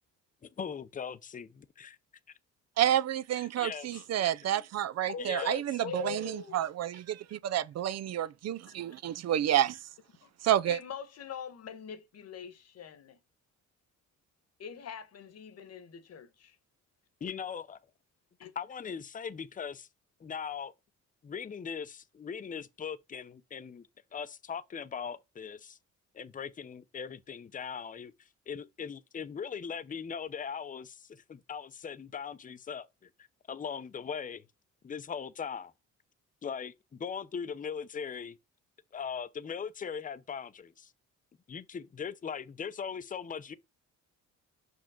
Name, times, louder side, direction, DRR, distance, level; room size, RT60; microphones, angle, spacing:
voice 1, 0.4-2.0 3.3-4.6 5.2-5.6 17.2-17.8 18.6-19.9 20.2-20.7 21.2-25.8 26.1-28.1 28.5-33.1 33.5-34.4 34.8-35.7 36.4-38.4 38.9-40.9 41.5-43.5, left 7 dB, 25° left, 0.6 m, -40 dB
voice 2, 2.8-9.7 10.4-10.8, right 11 dB, 60° right, 0.5 m, -29 dB
voice 3, 5.0-6.6 7.3-7.4 10.2-10.3 10.7-13.2 14.6-16.6 18.4-18.5, left 8 dB, 55° left, 1.3 m, -42 dB
5.8 x 5.2 x 3.7 m
cardioid pair, 90°, 30 cm